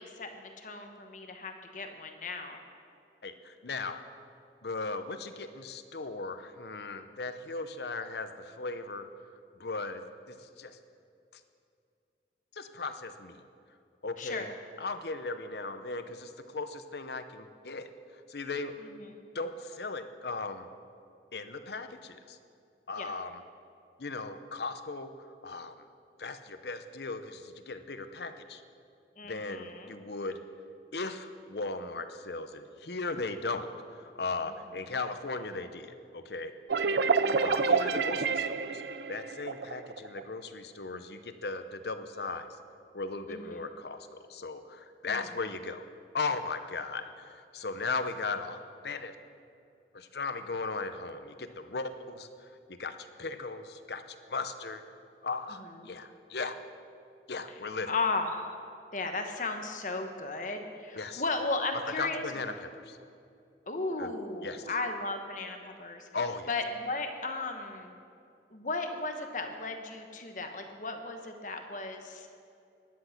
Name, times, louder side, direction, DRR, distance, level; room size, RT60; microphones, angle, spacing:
voice 1, 0.0-2.6 14.2-14.5 18.8-19.2 23.0-23.2 29.2-29.9 36.8-37.6 43.3-43.7 45.1-45.3 55.6-55.9 57.5-57.6 57.9-58.6 58.9-62.2 63.7-66.1 66.5-68.0 68.5-72.3, left 3 dB, 45° left, 5 dB, 1.2 m, -36 dB
voice 2, 3.2-4.0 4.6-9.1 9.6-10.0 10.3-10.8 12.5-13.4 14.0-14.5 14.8-17.9 18.3-18.7 19.3-20.7 21.3-22.4 22.9-23.4 24.0-25.1 25.4-25.8 26.2-28.6 29.2-30.4 30.9-36.5 37.4-38.8 39.1-42.6 42.9-45.8 46.1-49.1 49.9-54.0 54.3-54.8 55.2-56.6 57.3-57.9 61.0-61.2 62.0-63.0 64.0-64.1 64.4-64.6 66.1-66.5, left 3 dB, 70° left, 9 dB, 0.8 m, -37 dB
sound 1, 36.7-40.2, right 4 dB, 70° right, 0.5 m, -28 dB
16.0 x 10.5 x 5.9 m, 2.5 s
head